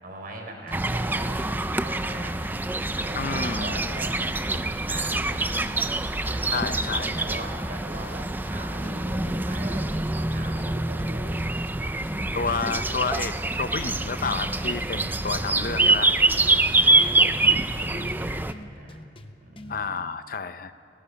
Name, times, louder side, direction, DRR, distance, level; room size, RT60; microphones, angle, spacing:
voice 1, 0.0-2.4 2.9-5.6 6.3-11.4 16.3-17.1 17.7-19.0 19.4-20.1, right 1 dB, 50° right, 2 dB, 4.6 m, -41 dB
sound 1, 0.7-20.0, left 1 dB, 30° left, 0.9 m, -46 dB
sound 2, 0.7-18.5, right 2 dB, 10° right, 0.5 m, -25 dB
voice 2, 3.1-3.8 6.5-7.2 12.3-16.2 17.9-18.1 19.7-20.7, left 4 dB, 50° left, 11 dB, 0.7 m, -30 dB
30.0 x 19.0 x 5.8 m, 2.9 s
head